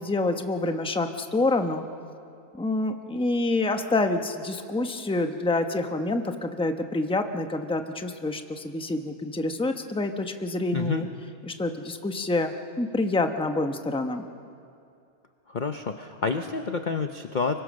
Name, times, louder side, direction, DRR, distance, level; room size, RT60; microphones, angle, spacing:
voice 1, 0.0-1.8 2.5-11.1 11.5-14.3, left 2 dB, 5° left, 6 dB, 0.8 m, -27 dB
voice 2, 10.7-11.1 15.5-17.6, left 5 dB, 45° left, 7 dB, 0.7 m, -29 dB
25.0 x 23.0 x 6.4 m, 2.4 s
omnidirectional pair, 1.6 m